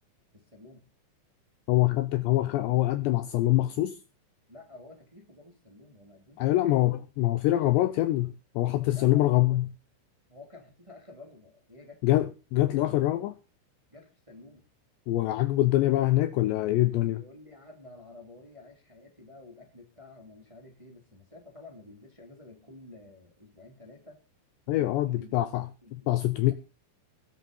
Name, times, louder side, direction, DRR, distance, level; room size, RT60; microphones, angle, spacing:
voice 1, 0.3-0.9 4.5-6.8 7.8-7.9 8.9-9.6 10.3-12.1 13.9-14.7 17.1-24.2 24.6-26.1, left 2 dB, 10° right, 2.6 m, -51 dB
voice 2, 1.7-4.0 6.4-9.7 12.0-13.4 15.1-17.2 24.7-25.7 26.1-26.5, left 16 dB, 80° left, 2.6 m, -24 dB
21.0 x 7.3 x 5.5 m
omnidirectional pair, 5.6 m